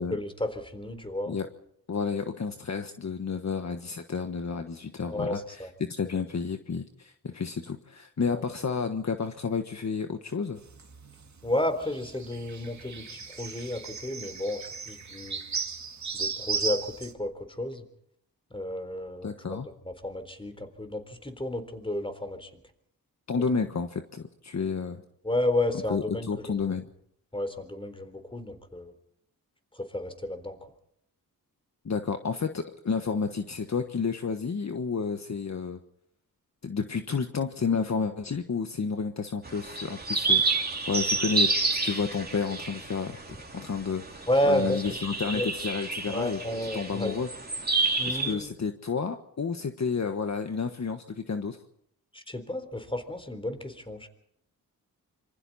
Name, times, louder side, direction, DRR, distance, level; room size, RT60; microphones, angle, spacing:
voice 1, 0.1-1.4 5.1-5.7 8.3-8.4 11.4-15.4 16.1-17.8 18.5-19.7 20.0-22.5 25.2-26.3 27.3-28.9 29.7-30.6 44.3-44.8 45.3-45.5 46.1-47.1 48.0-48.5 52.1-54.1, left 1 dB, 15° left, 8 dB, 3.8 m, -31 dB
voice 2, 1.9-10.6 19.2-19.7 23.3-25.0 25.9-26.8 31.8-35.8 36.6-43.2 43.5-46.4 46.7-47.3 48.1-51.6, left 5 dB, 50° left, 6 dB, 1.5 m, -31 dB
sound 1, 10.6-17.1, right 5 dB, 50° right, 2.2 m, -36 dB
sound 2, 39.4-48.3, right 3 dB, 25° right, 3.1 m, -29 dB
26.5 x 25.0 x 4.3 m, 0.73 s
cardioid pair, 80°, 36 cm